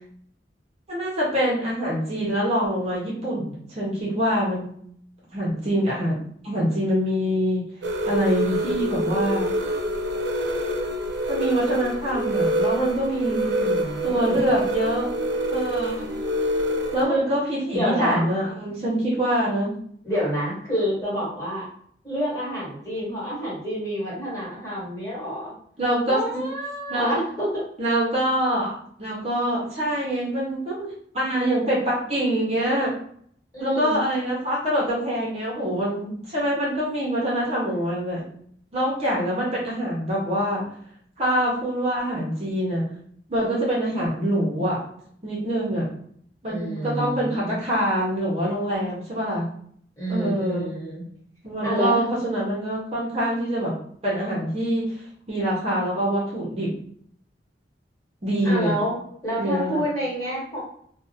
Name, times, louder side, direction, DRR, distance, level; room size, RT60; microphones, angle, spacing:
voice 1, 0.9-4.7 5.3-6.2 6.4-7.6 8.0-9.5 11.3-13.5 14.0-15.1 15.5-16.1 16.9-19.7 25.8-26.4 26.9-27.1 27.8-28.7 29.0-32.9 33.6-38.2 38.7-40.6 41.2-42.8 43.3-44.8 45.2-45.9 46.4-49.4 50.1-50.7 51.4-53.7 54.0-55.0 55.3-56.7 58.2-58.8 59.4-59.8, equal, 35° right, -5 dB, 0.7 m, -25 dB
sound 1, 7.8-17.1, right 1 dB, 85° right, 0.5 m, -26 dB
voice 2, 13.5-14.5 17.0-17.2 17.7-18.2 20.0-21.7 22.0-25.6 26.1-27.6 33.5-34.0 46.4-47.6 50.0-51.1 51.6-52.0 58.4-58.9 59.2-60.6, equal, 20° left, -8 dB, 1.3 m, -28 dB
2.5 x 2.1 x 2.6 m, 0.64 s
head